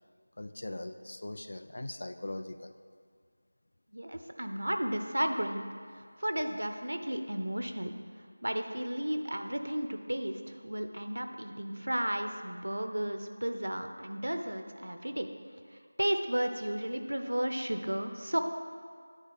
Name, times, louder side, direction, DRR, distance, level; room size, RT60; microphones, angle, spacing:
voice 1, 0.4-2.7, left 1 dB, 50° left, 10 dB, 0.3 m, -40 dB
voice 2, 3.9-5.7 6.2-7.9 8.4-15.3 16.0-18.4, right 1 dB, 70° right, 6 dB, 0.6 m, -33 dB
9.7 x 3.9 x 4.8 m, 2.1 s
figure-of-eight pair, 170°, 0 cm